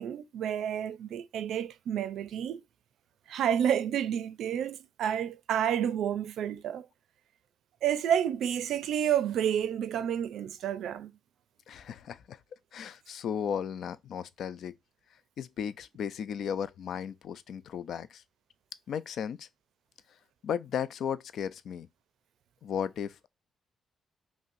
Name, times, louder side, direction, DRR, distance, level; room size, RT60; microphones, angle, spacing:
voice 1, 0.0-2.6 3.3-6.9 7.8-11.1, right 9 dB, 75° right, 0.4 m, -30 dB
voice 2, 11.7-12.4 12.7-14.8 15.4-18.2 18.9-19.5 20.4-21.9 22.6-23.3, left 8 dB, 60° left, 0.3 m, -35 dB
5.4 x 2.1 x 2.5 m
cardioid pair, 160°, 0 cm